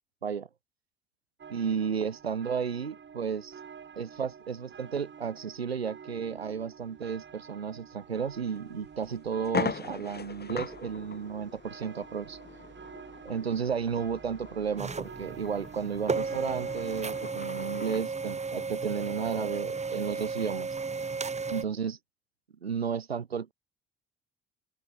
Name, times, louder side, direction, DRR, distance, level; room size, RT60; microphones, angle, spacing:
sound 1, 1.4-17.3, right 7 dB, 40° right, 6.3 m, -49 dB
voice 1, 1.5-3.5 4.0-12.4 13.2-20.7 21.5-22.0 22.6-23.5, right 6 dB, 85° right, 1.2 m, -33 dB
sound 2, 8.5-8.6 9.0-9.1 9.4-18.1, left 6 dB, 30° left, 3.4 m, -40 dB
sound 3, 14.8-21.7, right 4 dB, 20° right, 2.0 m, -34 dB
open air
figure-of-eight pair, 45°, 30 cm